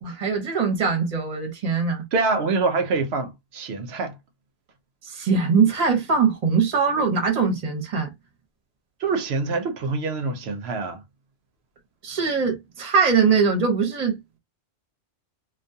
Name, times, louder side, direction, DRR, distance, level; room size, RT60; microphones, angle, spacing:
voice 1, 0.0-2.0 5.0-8.1 12.0-14.2, right 5 dB, 40° right, 0.9 m, -22 dB
voice 2, 2.1-4.2 9.0-11.0, right 4 dB, 70° right, 0.8 m, -25 dB
2.3 x 2.3 x 2.6 m
omnidirectional pair, 1.1 m